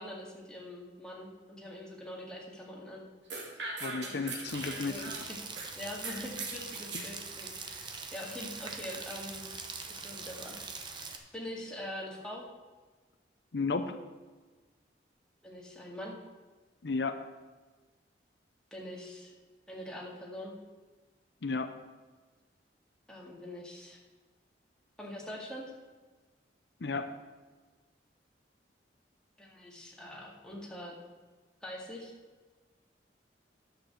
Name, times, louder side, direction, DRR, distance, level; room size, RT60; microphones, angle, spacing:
voice 1, 0.0-3.1 4.0-4.2 4.6-5.4 5.8-9.5 10.0-11.1 11.3-12.5 15.4-16.2 18.7-19.3 19.7-20.6 23.1-24.0 25.0-25.7 29.4-31.0 31.6-32.1, left 1 dB, 5° left, -3 dB, 2.1 m, -43 dB
sound 1, 3.3-5.7 6.0-7.1, right 3 dB, 80° right, 2.3 m, -40 dB
voice 2, 3.8-5.0 6.9-7.0 13.5-14.0 16.8-17.2 21.4-21.7 26.8-27.1, left 4 dB, 70° left, 8 dB, 0.6 m, -33 dB
Rain, 4.5-11.2, right 4 dB, 25° right, 1.0 m, -43 dB
10.5 x 6.8 x 7.4 m, 1.3 s
head